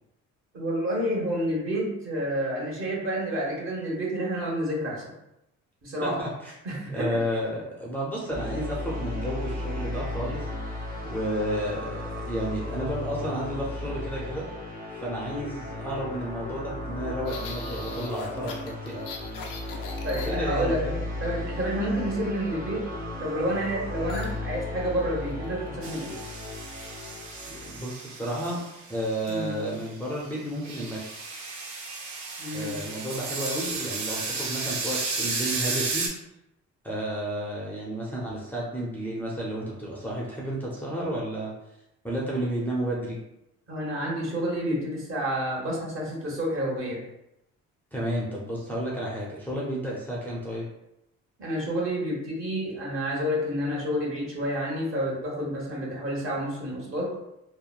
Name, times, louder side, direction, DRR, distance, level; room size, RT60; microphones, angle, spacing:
voice 1, 0.5-5.1 5.8-6.2 6.6-7.2 20.0-20.9 21.2-22.9 23.2-26.2 29.3-29.7 32.4-32.8 43.7-47.0 51.4-57.1, equal, 45° right, -4 dB, 1.2 m, -29 dB
voice 2, 6.0-6.5 6.9-10.5 11.0-14.5 14.9-19.0 20.2-21.0 27.5-28.6 28.9-31.2 32.5-36.1 36.8-41.5 42.0-43.2 47.9-50.7, right 1 dB, 5° left, -5 dB, 0.5 m, -32 dB
sound 1, 8.3-27.8, left 2 dB, 30° right, 0.8 m, -35 dB
sound 2, 17.3-20.7 24.1-24.4 24.6-24.9 25.3-25.7, left 4 dB, 85° left, 0.5 m, -40 dB
sound 3, 25.8-29.9 30.2-36.1, right 3 dB, 70° right, 0.7 m, -33 dB
3.0 x 2.0 x 2.4 m, 0.86 s
cardioid pair, 90°, 30 cm